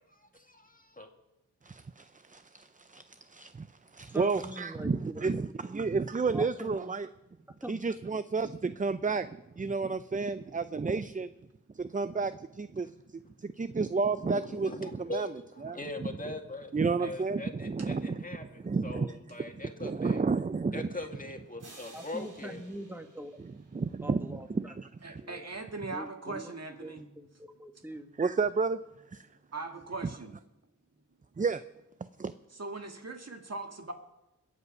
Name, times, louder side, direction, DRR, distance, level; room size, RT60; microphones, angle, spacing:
voice 1, 0.1-1.1 14.4-16.7 17.0-20.2 20.7-22.6, left 2 dB, 25° left, 4 dB, 2.0 m, -42 dB
voice 2, 1.6-3.7 3.9-7.1 7.7-11.3 11.7-12.9 13.4-15.3 15.6-16.1 16.7-18.2 18.6-19.2 19.8-20.9 23.4-25.2 28.2-28.8 29.1-29.3 31.4-31.6 32.2-32.3, right 4 dB, 25° right, 13 dB, 0.5 m, -31 dB
voice 3, 4.1-5.4 6.3-6.9 7.6-7.8 21.9-23.3 24.0-24.5 25.2-25.4 25.9-26.5 26.8-28.1, right 1 dB, 5° right, 6 dB, 1.8 m, -43 dB
sound 1, 21.6-24.3, right 2 dB, 70° right, 3.5 m, -55 dB
voice 4, 25.0-27.1 29.5-30.3 32.5-33.9, right 3 dB, 55° right, 4 dB, 1.9 m, -40 dB
22.0 x 8.2 x 5.4 m, 0.93 s
cardioid pair, 45°, 32 cm